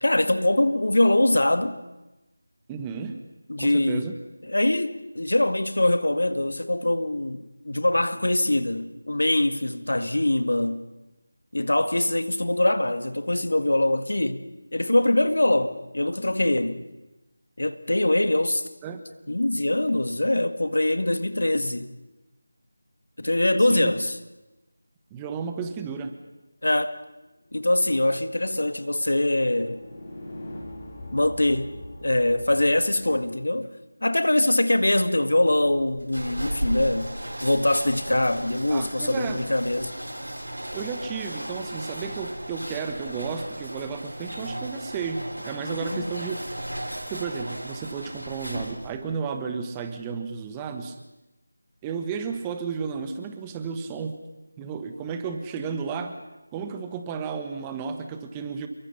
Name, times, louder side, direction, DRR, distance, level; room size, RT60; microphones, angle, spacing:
voice 1, 0.0-1.8 3.5-4.1 4.5-10.8 11.5-16.8 17.6-18.7 19.3-21.9 23.2-24.2 26.6-27.0 27.5-29.8 31.1-33.7 34.0-37.1 37.4-39.9 45.6-46.1, left 1 dB, 70° left, 1.9 m, -23 dB
voice 2, 2.7-3.2 3.6-4.1 18.8-19.0 23.6-23.9 25.1-26.1 38.7-39.4 40.7-46.4 47.1-51.0 51.8-54.2 54.6-56.2 56.5-58.7, right 6 dB, 10° right, 1.3 m, -33 dB
sound 1, 27.8-33.2, left 1 dB, 25° left, 5.4 m, -43 dB
sound 2, 35.5-49.0, right 1 dB, 90° right, 6.6 m, -35 dB
28.5 x 23.5 x 5.7 m
figure-of-eight pair, 165°, 0 cm